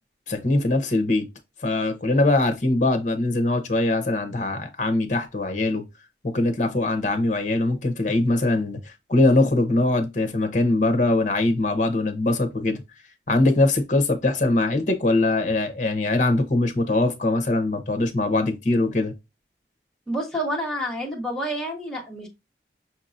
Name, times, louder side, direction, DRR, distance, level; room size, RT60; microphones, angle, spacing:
voice 1, 0.3-1.2 1.6-5.8 6.3-12.8 13.3-19.1, left 2 dB, 45° left, 0.8 m, -22 dB
voice 2, 20.1-22.3, equal, 5° left, 1.2 m, -28 dB
6.0 x 2.8 x 2.5 m
head